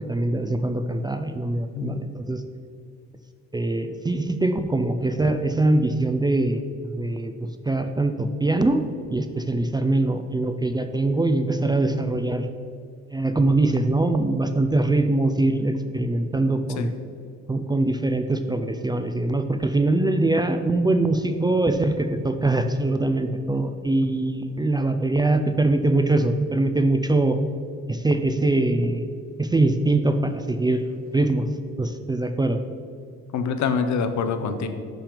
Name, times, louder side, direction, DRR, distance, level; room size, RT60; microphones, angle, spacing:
voice 1, 0.1-2.4 3.5-7.3 7.7-8.8 9.1-12.5 13.1-16.9 17.5-27.4 27.9-29.0 29.4-30.8 31.1-31.5 31.8-32.6, right 2 dB, 15° right, 7 dB, 0.3 m, -23 dB
voice 2, 1.8-2.1 16.8-16.9 24.0-24.1 33.3-34.7, left 5 dB, 70° left, 8 dB, 0.7 m, -25 dB
6.0 x 5.0 x 5.1 m, 2.3 s
cardioid pair, 90°, 30 cm